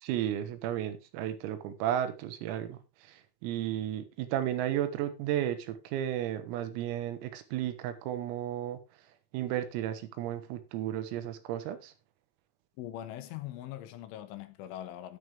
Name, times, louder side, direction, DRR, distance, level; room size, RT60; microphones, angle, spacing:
voice 1, 0.0-8.8 9.3-11.9, right 11 dB, 85° right, 4.0 m, -33 dB
voice 2, 12.8-15.2, left 12 dB, 75° left, 3.3 m, -41 dB
11.0 x 9.6 x 3.4 m
omnidirectional pair, 5.9 m